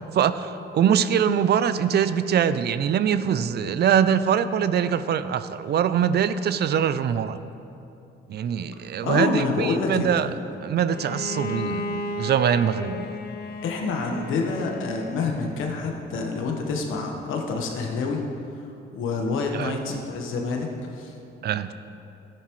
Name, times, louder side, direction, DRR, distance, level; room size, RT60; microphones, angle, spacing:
voice 1, 0.1-7.4 8.3-10.3 10.6-13.1 19.5-19.7 21.4-21.7, right 8 dB, 55° right, 13 dB, 0.5 m, -23 dB
voice 2, 9.0-10.4 13.6-18.2 18.9-20.7 20.9-21.1, left 4 dB, 85° left, 2 dB, 1.3 m, -27 dB
Bowed string instrument, 10.9-15.6, left 2 dB, 50° left, 0.8 m, -34 dB
13.0 x 9.9 x 3.1 m, 2.8 s
cardioid pair, 90°, 20 cm